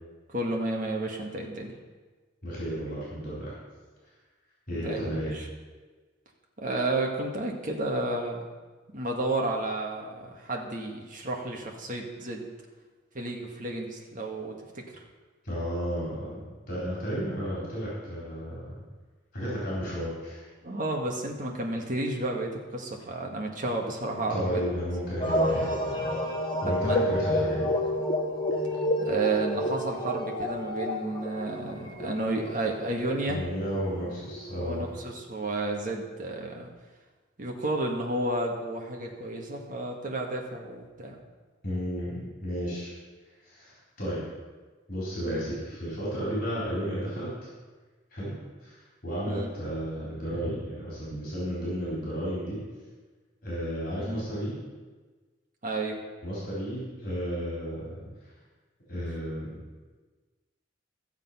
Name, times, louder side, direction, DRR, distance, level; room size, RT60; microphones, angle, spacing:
voice 1, 0.3-1.7 4.7-5.5 6.6-8.5 8.9-12.5 13.1-15.0 20.6-24.4 26.8-27.1 29.0-33.4 34.6-36.7 37.4-41.2 45.2-45.5 49.3-49.5 54.0-54.2 55.6-56.0, right 2 dB, 40° right, 0 dB, 1.8 m, -32 dB
voice 2, 2.4-3.5 4.7-5.3 15.4-16.4 16.7-18.8 19.3-20.5 24.1-26.2 26.6-27.7 33.3-34.9 41.6-42.9 43.4-44.3 44.9-47.3 48.1-52.6 53.4-54.6 56.2-58.1 58.9-59.6, equal, 45° left, -7 dB, 4.1 m, -33 dB
sound 1, 25.2-35.2, left 1 dB, 25° left, 1.5 m, -30 dB
14.0 x 7.2 x 5.6 m, 1.3 s
head